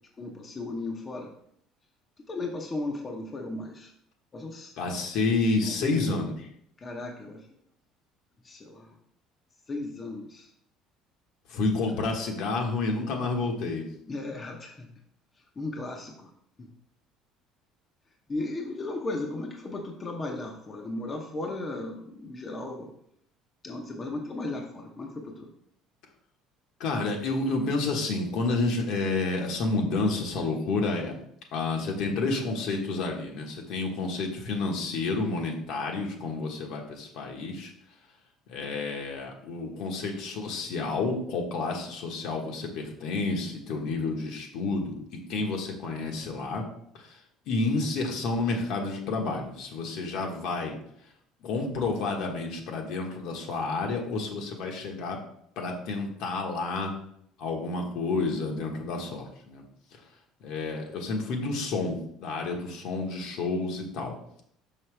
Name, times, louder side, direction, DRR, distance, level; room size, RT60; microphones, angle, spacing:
voice 1, 0.2-1.3 2.2-3.9 4.3-4.7 5.7-6.2 6.8-7.4 8.4-8.9 9.7-10.5 14.1-14.9 15.6-16.3 16.6-16.7 18.3-22.9 23.6-25.5, left 2 dB, 25° left, 1 dB, 0.7 m, -35 dB
voice 2, 4.8-6.3 11.5-13.9 26.8-31.2 31.5-37.7 38.5-46.6 46.9-47.1 47.5-50.7 51.4-55.2 55.6-56.9 57.4-59.6 60.4-64.1, left 3 dB, 65° left, 1 dB, 1.3 m, -30 dB
5.8 x 5.6 x 3.3 m, 0.70 s
cardioid pair, 145°, 0 cm